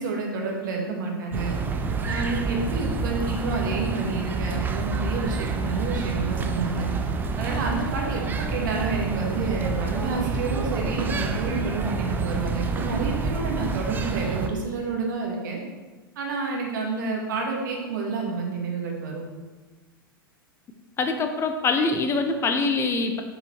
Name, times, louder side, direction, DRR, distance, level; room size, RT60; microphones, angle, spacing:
voice 1, 0.0-1.5 2.1-6.9 7.4-15.6 16.2-19.2, right 4 dB, 55° right, 0 dB, 1.9 m, -29 dB
sound 1, 1.3-14.5, right 4 dB, 15° right, 0.6 m, -28 dB
voice 2, 21.0-23.2, left 3 dB, 20° left, 6 dB, 0.7 m, -24 dB
8.2 x 5.1 x 4.6 m, 1.3 s
figure-of-eight pair, 95°, 12 cm